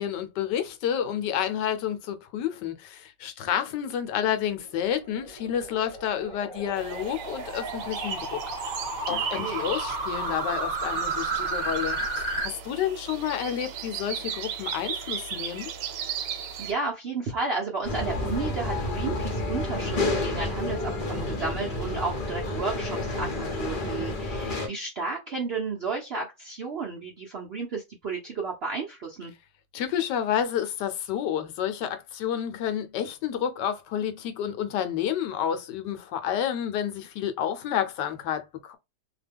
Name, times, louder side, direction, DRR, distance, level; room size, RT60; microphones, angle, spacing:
voice 1, 0.0-8.8 9.1-15.7 29.7-38.8, left 9 dB, 75° left, 1.2 m, -30 dB
sound 1, 4.4-12.5, right 3 dB, 20° right, 1.1 m, -32 dB
sound 2, 6.8-16.7, right 7 dB, 85° right, 1.3 m, -36 dB
voice 2, 9.1-9.7 16.3-29.3, right 4 dB, 60° right, 0.6 m, -33 dB
sound 3, 17.8-24.7, left 2 dB, 45° left, 0.6 m, -30 dB
2.9 x 2.2 x 3.3 m
omnidirectional pair, 1.9 m